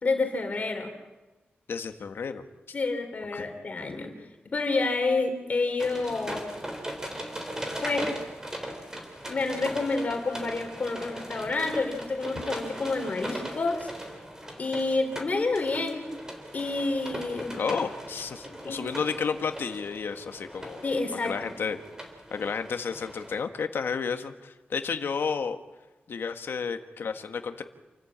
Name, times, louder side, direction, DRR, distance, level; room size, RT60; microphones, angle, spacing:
voice 1, 0.0-0.9 2.7-4.1 4.5-6.4 7.8-8.1 9.3-13.9 14.6-16.0 16.5-17.6 18.5-18.8 20.8-21.5, left 3 dB, 40° left, 4 dB, 3.6 m, -29 dB
voice 2, 1.7-2.4 3.3-3.5 17.6-20.8 21.2-21.8 22.3-25.6 26.1-27.6, left 5 dB, 75° left, 7 dB, 1.5 m, -31 dB
sound 1, 5.8-23.4, right 1 dB, 15° right, 3.7 m, -39 dB
28.5 x 14.5 x 8.8 m, 1.2 s
wide cardioid pair, 150°, 4 cm